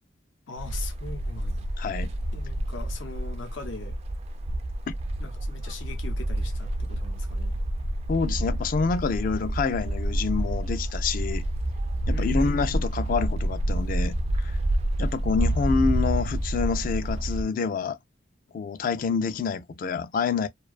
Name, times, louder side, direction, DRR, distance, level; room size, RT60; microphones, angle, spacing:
voice 1, 0.5-1.7 2.3-4.0 5.2-7.6 12.1-12.6, left 3 dB, 85° left, 0.7 m, -40 dB
sound 1, 0.6-17.4, right 1 dB, 35° right, 0.3 m, -28 dB
voice 2, 1.8-2.1 4.9-5.0 8.1-11.5 12.1-14.6 15.0-18.0 18.5-20.5, left 5 dB, 45° left, 0.3 m, -27 dB
2.5 x 2.2 x 2.3 m
head